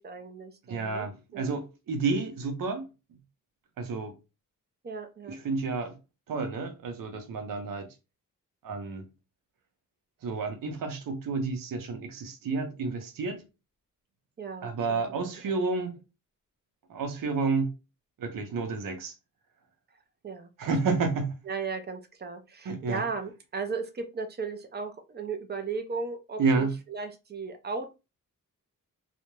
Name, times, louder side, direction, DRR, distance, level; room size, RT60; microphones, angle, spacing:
voice 1, 0.0-1.1 1.3-1.6 4.8-5.4 14.4-15.4 20.2-20.5 20.9-21.0 21.5-27.9, right 4 dB, 30° right, 0.4 m, -36 dB
voice 2, 0.7-2.9 3.8-4.1 5.3-6.0 6.3-7.9 8.6-9.1 10.2-13.4 14.6-16.0 16.9-17.7 18.2-19.1 20.6-21.4 22.6-23.0 26.4-26.7, right 4 dB, 85° right, 0.7 m, -30 dB
2.4 x 2.1 x 3.0 m
wide cardioid pair, 160°, 33 cm